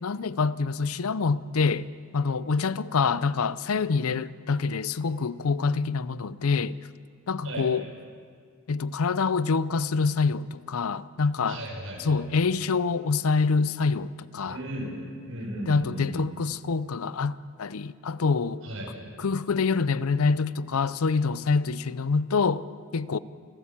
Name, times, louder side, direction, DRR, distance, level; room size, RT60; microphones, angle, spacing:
voice 1, 0.0-1.9 2.1-6.8 7.3-7.8 8.7-11.6 12.0-14.6 15.7-18.6 19.2-22.7 22.9-23.2, left 4 dB, 85° left, 0.6 m, -26 dB
voice 2, 11.5-12.2 14.4-15.0 15.2-16.3 18.6-18.9, right 1 dB, 75° right, 6.0 m, -35 dB
28.5 x 13.0 x 7.3 m
head